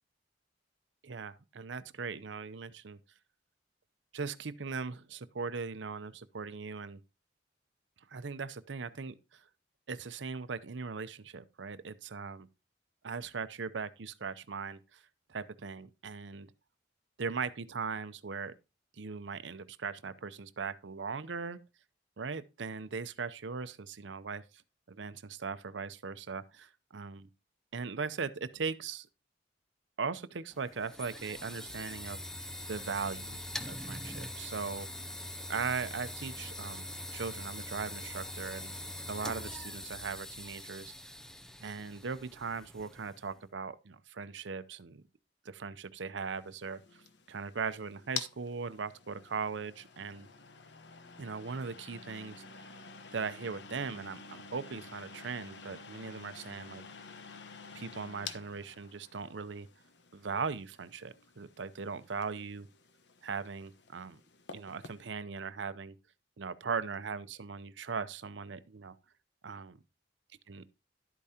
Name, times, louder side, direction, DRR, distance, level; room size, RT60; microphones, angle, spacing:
voice 1, 1.0-3.0 4.1-7.0 8.1-9.4 9.9-12.5 13.0-15.0 15.3-16.5 17.2-18.5 19.0-21.6 22.2-24.6 24.9-27.2 27.7-29.1 30.0-32.2 32.7-33.4 33.7-34.9 35.5-38.7 39.1-41.1 41.6-45.0 45.4-47.0 47.3-50.3 51.2-52.7 53.1-56.8 57.7-59.7 60.1-62.7 63.2-64.2 64.5-66.0 66.4-69.0 69.4-69.8 70.5-70.6, right 5 dB, 80° right, 0.7 m, -39 dB
sound 1, 30.5-43.3, left 1 dB, 5° left, 0.5 m, -43 dB
Opening and Closing a Small Electric Fan, 46.3-65.0, left 6 dB, 70° left, 1.0 m, -49 dB
12.0 x 8.4 x 2.8 m
head